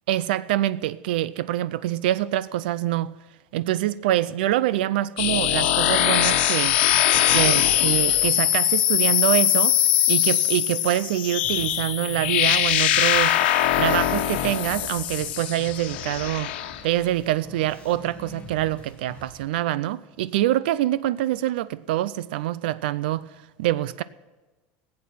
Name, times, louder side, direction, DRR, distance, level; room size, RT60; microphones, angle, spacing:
voice 1, 0.1-3.1 3.5-6.8 7.3-9.8 10.1-13.4 13.8-16.5 16.8-23.3 23.6-24.0, right 14 dB, 90° right, 0.4 m, -25 dB
sound 1, 5.2-16.8, left 12 dB, 80° left, 1.3 m, -22 dB
sound 2, 11.4-19.4, left 2 dB, 20° left, 1.6 m, -45 dB
15.5 x 8.6 x 7.5 m
cardioid pair, 175°, 5 cm